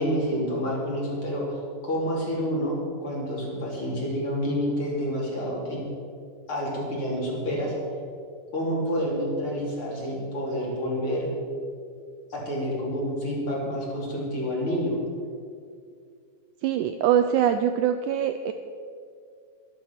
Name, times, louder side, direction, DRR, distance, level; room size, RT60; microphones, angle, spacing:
voice 1, 0.0-1.6 1.8-5.8 6.5-7.7 8.5-11.3 12.3-15.0, equal, 40° left, -4 dB, 3.3 m, -28 dB
voice 2, 16.6-18.5, right 9 dB, 80° right, 8 dB, 1.8 m, -23 dB
12.0 x 12.0 x 5.8 m, 2.3 s
omnidirectional pair, 3.9 m